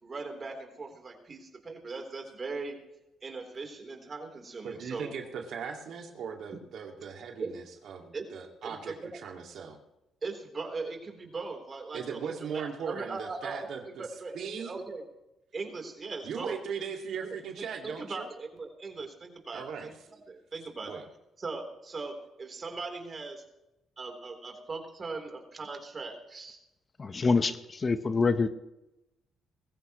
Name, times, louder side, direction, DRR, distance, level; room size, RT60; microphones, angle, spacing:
voice 1, 0.0-2.8 3.2-5.1 7.4-7.5 8.1-8.3 8.6-9.1 10.2-15.0 15.5-16.6 17.6-21.0 21.4-23.4 24.0-26.6, right 3 dB, 35° right, 3 dB, 3.9 m, -39 dB
voice 2, 4.6-9.8 11.9-14.0 14.3-14.8 16.2-18.3 19.5-19.9 20.8-21.0, right 6 dB, 70° right, 2 dB, 2.3 m, -38 dB
voice 3, 27.0-28.5, left 4 dB, 35° left, 9 dB, 1.1 m, -26 dB
21.0 x 15.0 x 3.2 m, 0.90 s
cardioid pair, 90°, 0 cm